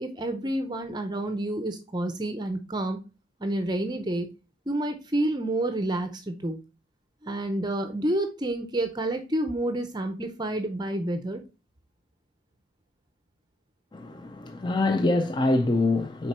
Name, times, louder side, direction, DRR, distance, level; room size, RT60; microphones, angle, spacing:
voice 1, 0.0-3.0 3.4-4.3 4.7-6.6 7.2-11.4, right 1 dB, 20° right, 0.6 m, -29 dB
voice 2, 13.9-16.3, left 2 dB, 25° left, 0.4 m, -25 dB
6.2 x 4.3 x 4.3 m
head